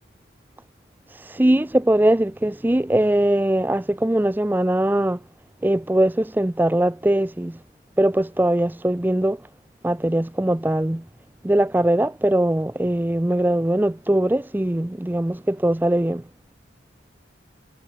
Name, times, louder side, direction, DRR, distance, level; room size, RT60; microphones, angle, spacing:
voice 1, 1.1-5.2 5.6-7.6 8.0-9.4 9.8-11.0 11.4-16.2, right 1 dB, 10° right, 0.4 m, -21 dB
head